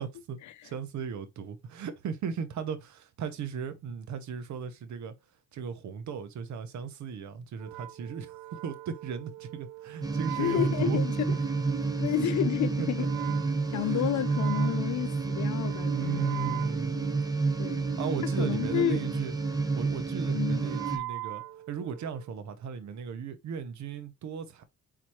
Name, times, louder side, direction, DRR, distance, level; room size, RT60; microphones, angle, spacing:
voice 1, 0.0-0.4 0.6-5.1 5.5-11.0 13.0-13.1 13.7-14.2 15.9-17.1 18.0-19.3 19.7-24.6, right 7 dB, 70° right, 1.0 m, -37 dB
Wind instrument woodwind instrument, 7.6-22.3, right 17 dB, 85° right, 0.5 m, -42 dB
sound 1, 10.0-21.0, right 4 dB, 15° right, 0.9 m, -29 dB
voice 2, 10.4-11.3 12.0-13.0 13.7-16.3 17.6-17.9 18.2-19.0 20.3-20.6, left 11 dB, 70° left, 0.7 m, -30 dB
4.2 x 4.0 x 3.1 m
cardioid pair, 90°, 30 cm